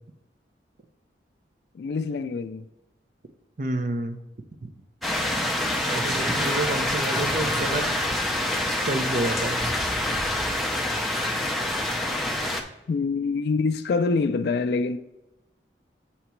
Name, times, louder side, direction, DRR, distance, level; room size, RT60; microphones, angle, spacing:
voice 1, 1.7-2.7 7.2-7.6 12.9-15.0, left 4 dB, 60° left, 0.3 m, -26 dB
voice 2, 3.6-4.2 4.6-4.7 5.8-7.8 8.6-9.6, right 2 dB, 45° right, 0.6 m, -29 dB
sound 1, 5.0-12.6, left 1 dB, ahead, 0.5 m, -26 dB
8.0 x 2.9 x 4.4 m
head